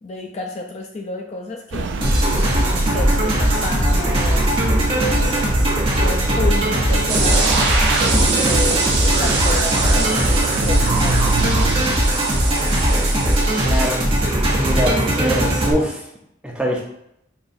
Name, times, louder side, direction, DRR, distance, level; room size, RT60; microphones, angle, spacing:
voice 1, 0.0-2.0 2.3-4.4 5.0-5.6 6.0-7.6 8.0-11.7, left 2 dB, 35° left, 2 dB, 0.3 m, -31 dB
sound 1, 1.7-11.9, right 3 dB, 90° right, 0.4 m, -26 dB
sound 2, 2.0-15.7, right 1 dB, 30° right, 0.9 m, -19 dB
sound 3, 7.1-13.9, right 3 dB, 70° right, 0.9 m, -23 dB
voice 2, 13.6-14.1 14.6-16.0 16.4-16.8, equal, 5° right, -4 dB, 0.7 m, -23 dB
5.4 x 3.0 x 2.6 m, 0.78 s
head